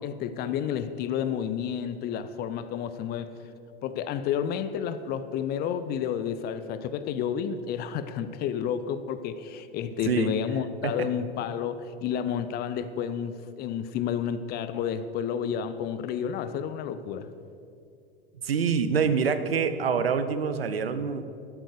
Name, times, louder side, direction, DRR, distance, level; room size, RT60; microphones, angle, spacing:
voice 1, 0.0-3.3 3.8-17.3, left 8 dB, 30° left, 12 dB, 0.6 m, -30 dB
voice 2, 18.4-21.3, right 6 dB, 75° right, 11 dB, 0.9 m, -26 dB
12.0 x 9.1 x 6.6 m, 2.5 s
figure-of-eight pair, 85°, 30 cm